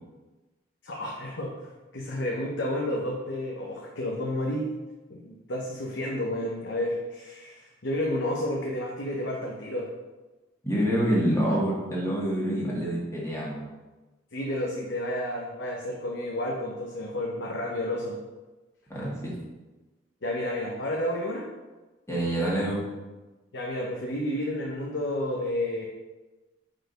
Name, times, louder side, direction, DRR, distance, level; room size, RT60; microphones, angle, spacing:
voice 1, 0.8-4.7 5.1-9.9 14.3-18.2 20.2-21.5 23.5-25.9, left 1 dB, 65° left, -2 dB, 0.8 m, -31 dB
voice 2, 10.6-13.6 18.9-19.4 22.1-22.8, equal, 15° left, -6 dB, 1.6 m, -26 dB
4.8 x 4.4 x 5.2 m, 1.2 s
head